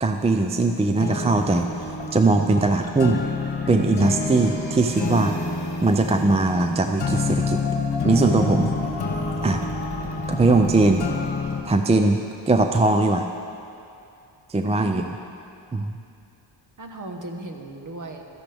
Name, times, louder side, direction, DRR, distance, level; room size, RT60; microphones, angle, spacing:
voice 1, 0.0-1.7 2.1-3.2 3.7-5.3 5.8-7.6 8.0-8.7 9.4-9.6 10.3-11.0 11.6-13.3 14.5-15.2 15.7-16.0, right 3 dB, 15° right, 5 dB, 0.4 m, -20 dB
sound 1, 0.9-11.6, left 3 dB, 55° left, 1.5 m, -28 dB
voice 2, 14.6-14.9 16.8-18.2, right 2 dB, 40° right, 3 dB, 1.3 m, -37 dB
16.0 x 13.5 x 3.5 m, 2.6 s
wide cardioid pair, 130°, 47 cm